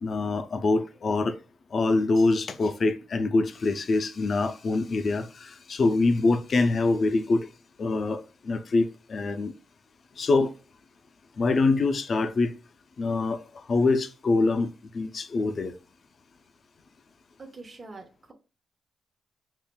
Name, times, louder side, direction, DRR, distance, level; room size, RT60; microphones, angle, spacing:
voice 1, 0.0-1.4 1.7-7.5 7.8-9.5 10.2-10.5 11.4-12.5 13.0-15.7, left 3 dB, 55° left, 0.5 m, -25 dB
voice 2, 17.4-18.3, right 3 dB, 35° right, 0.9 m, -44 dB
5.6 x 2.5 x 2.2 m
cardioid pair, 80°, 0 cm